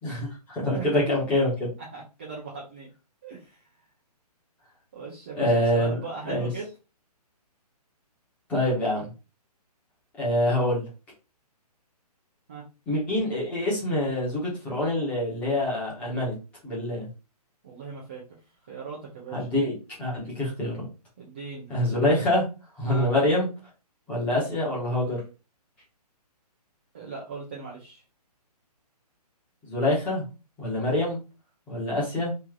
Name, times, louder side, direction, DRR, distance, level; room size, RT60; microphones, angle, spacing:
voice 1, 0.0-1.7 5.4-6.0 6.2-6.5 8.5-9.1 10.2-10.9 12.9-16.3 16.6-17.1 19.3-20.9 21.7-22.5 22.8-23.5 24.1-25.2 29.6-30.2 30.6-31.2 31.7-32.3, left 1 dB, 5° left, -6 dB, 1.0 m, -25 dB
voice 2, 1.9-2.9 3.2-3.6 4.9-6.7 12.5-12.6 17.6-18.2 18.7-19.5 21.2-21.7 22.8-23.1 26.9-28.0, right 4 dB, 15° right, -5 dB, 0.4 m, -39 dB
3.1 x 2.7 x 3.6 m, 0.31 s
hypercardioid pair, 170°, 21 cm